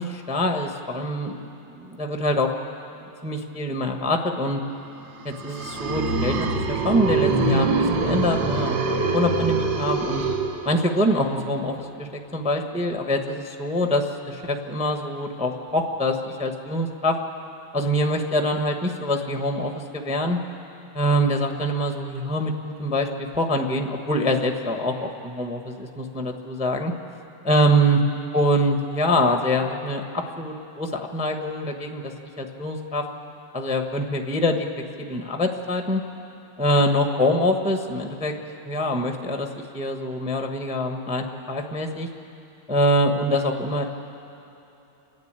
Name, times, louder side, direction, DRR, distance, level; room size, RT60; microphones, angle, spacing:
voice 1, 0.0-2.5 3.2-4.6 5.2-8.8 9.0-10.2 10.6-17.2 17.7-20.4 20.9-26.9 27.5-28.0 28.3-32.1 32.4-33.0 33.5-34.7 35.0-36.0 36.6-38.3 38.6-42.1 42.7-43.8, equal, 5° right, 4 dB, 0.5 m, -24 dB
sound 1, 5.2-11.1, right 3 dB, 60° right, 1.8 m, -24 dB
30.0 x 10.5 x 8.9 m, 3.0 s
omnidirectional pair, 2.3 m